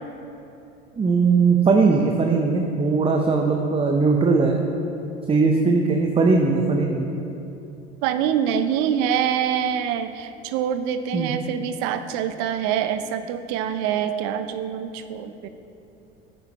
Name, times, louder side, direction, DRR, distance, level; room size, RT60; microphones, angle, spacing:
voice 1, 1.0-4.6 5.3-7.1 11.1-11.3, right 4 dB, 20° right, 2 dB, 0.6 m, -19 dB
voice 2, 8.0-15.5, right 8 dB, 60° right, 10 dB, 0.7 m, -25 dB
9.8 x 9.0 x 2.9 m, 2.8 s
hypercardioid pair, 85°, 32 cm